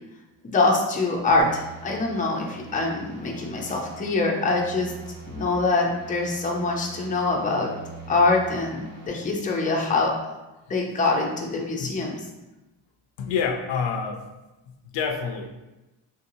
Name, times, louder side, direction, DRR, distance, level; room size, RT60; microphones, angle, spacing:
voice 1, 0.4-5.0 5.3-7.7 8.1-10.2 10.7-12.2, left 3 dB, 15° left, -1 dB, 0.6 m, -24 dB
sound 1, 1.4-9.1, right 3 dB, 75° right, 1.3 m, -43 dB
voice 2, 13.2-14.2 14.6-15.5, left 6 dB, 70° left, 3 dB, 0.6 m, -28 dB
3.7 x 2.7 x 2.7 m, 1.0 s
cardioid pair, 95°, 46 cm